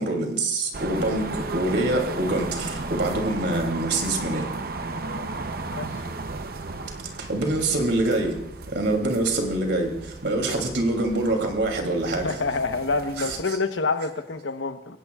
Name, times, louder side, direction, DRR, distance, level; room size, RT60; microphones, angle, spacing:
voice 1, 0.0-4.5 7.2-8.4 8.7-12.4 13.2-13.4, right 2 dB, 70° right, 3 dB, 3.0 m, -25 dB
sound 1, 0.7-13.4, right 3 dB, 50° right, 0.7 m, -35 dB
voice 2, 5.7-6.1 12.2-15.0, left 3 dB, 85° left, 8 dB, 1.0 m, -27 dB
29.0 x 16.5 x 2.4 m, 0.86 s
head